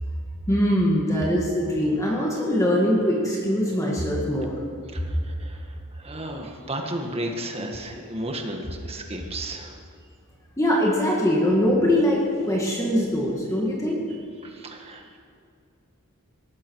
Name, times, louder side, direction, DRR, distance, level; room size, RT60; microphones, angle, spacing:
voice 1, 0.5-4.6 10.6-14.0, equal, 15° left, -3 dB, 2.0 m, -22 dB
voice 2, 4.9-9.8 14.4-15.2, right 1 dB, 30° right, 3 dB, 1.8 m, -34 dB
18.5 x 14.5 x 4.8 m, 2.4 s
head